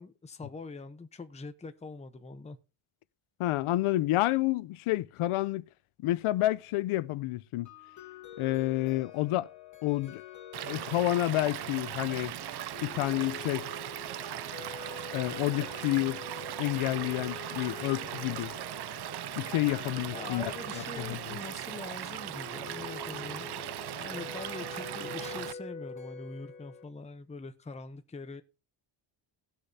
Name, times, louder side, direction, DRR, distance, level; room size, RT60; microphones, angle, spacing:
voice 1, 0.0-2.6 20.1-28.4, left 3 dB, 15° left, 0.8 m, -43 dB
voice 2, 3.4-5.6 6.0-7.7 8.4-9.5 9.8-10.2 10.7-12.3 12.8-13.6 15.1-16.2 16.6-18.5 19.4-21.4, left 16 dB, 80° left, 0.7 m, -29 dB
sound 1, 7.6-26.8, left 6 dB, 35° left, 1.7 m, -46 dB
sound 2, 9.1-9.4 9.8-10.3 10.7-11.1 11.7-12.4 12.6-13.9 14.4-14.8 15.3-15.4 15.7-16.7, right 5 dB, 85° right, 5.3 m, -65 dB
Stream / Liquid, 10.5-25.5, right 13 dB, 55° right, 0.6 m, -39 dB
18.5 x 6.5 x 2.7 m
cardioid pair, 145°, 50 cm